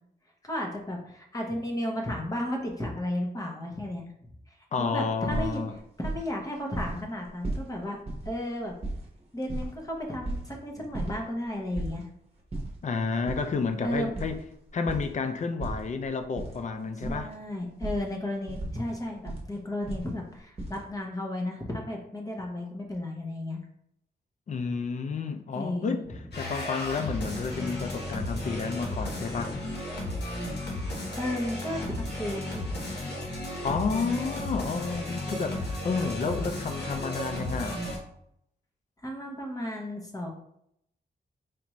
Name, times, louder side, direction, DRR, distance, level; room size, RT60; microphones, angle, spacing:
voice 1, 0.4-4.3 4.8-5.6 6.0-8.0 8.2-8.7 9.3-12.1 13.8-14.1 17.0-23.6 25.5-26.2 31.2-32.8 33.9-34.2 39.0-40.3, left 1 dB, 20° left, 0.8 m, -33 dB
voice 2, 4.7-5.8 12.8-14.4 14.7-17.3 24.5-26.0 26.4-29.5 33.6-37.8, left 4 dB, 45° left, 0.4 m, -30 dB
sound 1, 5.3-6.4 6.7-7.6 8.1-8.3 8.6-10.5 10.9-11.1 11.4-12.0 12.4-12.7 13.2-15.1 15.6-16.6 16.8-17.3 17.8-18.0 18.5-19.4 19.8-20.8, right 2 dB, 35° right, 0.9 m, -35 dB
sound 2, 26.3-38.0, left 1 dB, 75° left, 1.0 m, -34 dB
4.4 x 2.5 x 3.0 m
wide cardioid pair, 125°, 17 cm